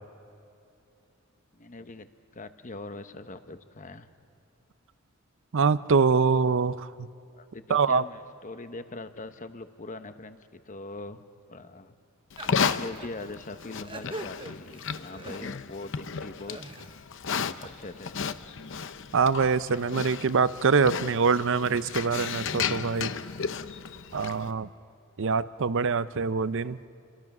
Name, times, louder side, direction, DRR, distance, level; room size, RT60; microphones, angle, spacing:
voice 1, 1.5-2.1 2.3-4.1 7.3-11.2 11.5-12.0 12.4-16.6 17.4-18.2, left 2 dB, 35° left, 9 dB, 1.0 m, -41 dB
voice 2, 5.5-7.1 7.7-8.0 19.1-23.1 24.1-24.7 25.2-26.8, right 5 dB, 60° right, 15 dB, 0.6 m, -24 dB
Livestock farm animals working animals, 12.3-24.5, left 6 dB, 60° left, 0.7 m, -34 dB
sound 1, 12.4-13.1 13.6-15.8 16.3-17.0, right 2 dB, 25° right, 0.8 m, -43 dB
29.5 x 23.0 x 6.1 m, 2.7 s
head